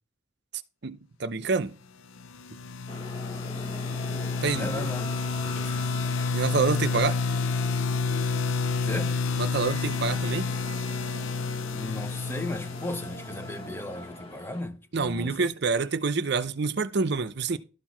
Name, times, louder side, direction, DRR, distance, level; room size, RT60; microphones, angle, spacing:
voice 1, 0.8-1.8 4.4-4.9 6.3-7.2 9.4-10.5 14.9-17.6, right 4 dB, 55° right, 0.6 m, -27 dB
sound 1, 2.2-14.0, left 4 dB, 80° left, 0.5 m, -30 dB
sound 2, 2.9-14.6, left 1 dB, 30° left, 1.4 m, -42 dB
voice 2, 4.5-5.1 5.4-5.9 8.8-9.2 11.7-15.5, left 1 dB, 10° left, 0.8 m, -36 dB
12.5 x 4.5 x 6.0 m
head